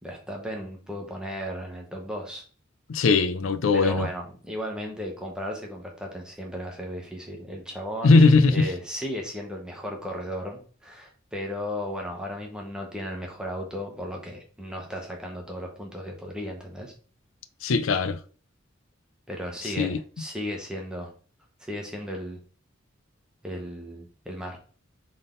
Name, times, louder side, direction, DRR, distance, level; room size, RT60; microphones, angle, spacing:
voice 1, 0.0-2.4 3.7-16.9 19.3-21.1 21.6-22.4 23.4-24.6, equal, 5° right, 1.1 m, -35 dB
voice 2, 2.9-4.1 8.0-8.7 17.6-18.2 19.6-20.0, left 3 dB, 75° left, 0.5 m, -20 dB
3.8 x 3.6 x 3.8 m
head